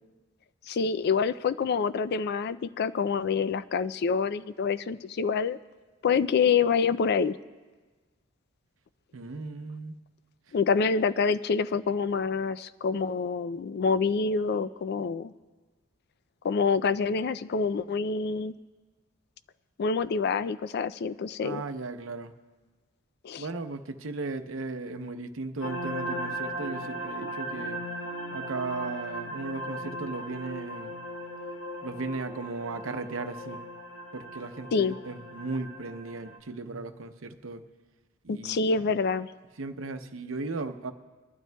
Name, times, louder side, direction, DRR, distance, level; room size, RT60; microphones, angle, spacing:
voice 1, 0.7-5.6 6.0-7.4 10.5-15.3 16.4-18.6 19.8-21.6 23.2-23.5 34.7-35.0 38.3-39.3, left 5 dB, 50° left, 15 dB, 0.4 m, -27 dB
voice 2, 9.1-10.0 21.4-22.3 23.4-27.8 28.3-31.0 31.8-33.6 34.1-37.6 38.2-38.8 39.6-40.9, right 3 dB, 70° right, 8 dB, 0.7 m, -36 dB
sound 1, 25.6-36.4, right 1 dB, 75° left, 1.3 m, -38 dB
23.5 x 12.0 x 2.2 m, 1.3 s
head